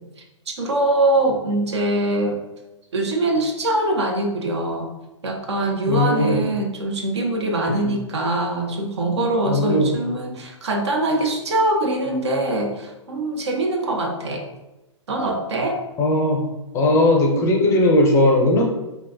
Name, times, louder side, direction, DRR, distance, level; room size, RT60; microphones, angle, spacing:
voice 1, 0.5-2.4 2.9-4.9 5.2-14.5 15.1-15.8, right 2 dB, 60° right, 2 dB, 0.6 m, -23 dB
voice 2, 5.9-6.4 7.7-7.9 9.5-10.0 16.0-16.4 16.7-18.6, left 1 dB, 20° left, 1 dB, 0.5 m, -18 dB
3.6 x 2.6 x 2.6 m, 0.99 s
figure-of-eight pair, 110°, 16 cm